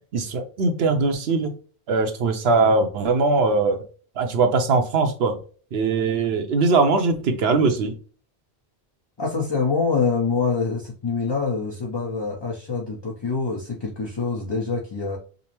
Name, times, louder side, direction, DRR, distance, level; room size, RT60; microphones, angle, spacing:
voice 1, 0.1-1.5 1.9-3.8 4.2-5.4 5.7-7.9, right 3 dB, 70° right, 7 dB, 0.9 m, -21 dB
voice 2, 9.2-15.2, left 4 dB, 30° left, -2 dB, 0.6 m, -25 dB
5.2 x 2.0 x 2.9 m, 0.40 s
omnidirectional pair, 1.1 m